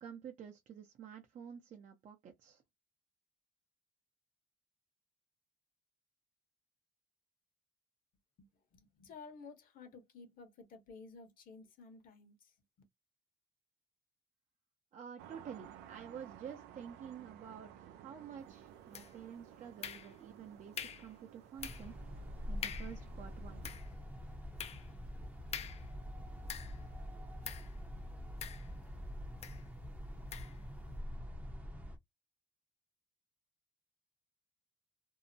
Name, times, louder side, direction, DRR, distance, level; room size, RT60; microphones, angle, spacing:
voice 1, 0.0-2.6 14.9-23.6, right 8 dB, 45° right, 0.6 m, -50 dB
voice 2, 8.4-12.6, left 4 dB, 55° left, 1.1 m, -54 dB
sound 1, 15.2-23.8, right 10 dB, 90° right, 0.4 m, -56 dB
sound 2, 18.9-19.3 19.8-20.4 20.8-21.1 21.6-22.0 22.3-22.4 22.6-23.0 23.4-26.9 27.4-27.8 28.4-29.0 29.4-29.6 30.3-30.6, left 8 dB, 40° left, 0.4 m, -46 dB
sound 3, 21.6-32.0, equal, 10° right, 0.6 m, -45 dB
2.7 x 2.0 x 2.6 m
cardioid pair, 110°, 17 cm